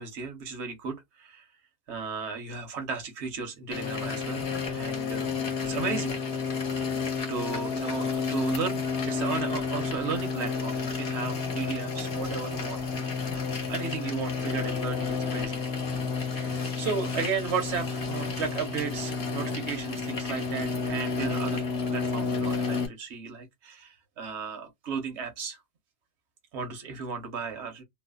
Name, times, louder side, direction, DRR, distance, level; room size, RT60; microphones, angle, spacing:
voice 1, 0.0-1.5 1.9-5.3 5.6-6.2 7.3-13.3 13.7-15.6 16.3-21.6 21.9-25.6 26.5-27.8, right 5 dB, 85° right, 1.1 m, -34 dB
sound 1, 3.7-22.9, left 5 dB, 65° left, 1.2 m, -31 dB
3.1 x 2.0 x 2.2 m
omnidirectional pair, 1.1 m